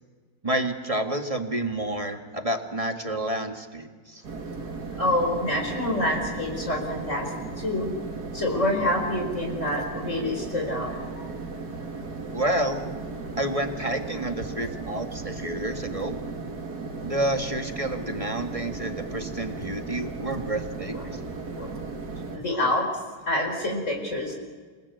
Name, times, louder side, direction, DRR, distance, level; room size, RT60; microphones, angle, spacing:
voice 1, 0.4-4.2 12.3-12.9 13.4-16.2 17.0-21.2, right 1 dB, 20° right, 6 dB, 1.7 m, -29 dB
sound 1, 4.2-22.4, right 3 dB, 55° right, 2.5 m, -36 dB
voice 2, 4.9-7.9 8.3-11.3 20.9-21.1 21.5-21.7 22.3-24.3, left 1 dB, 40° left, 1 dB, 4.8 m, -27 dB
28.5 x 19.0 x 8.4 m, 1.5 s
omnidirectional pair, 2.0 m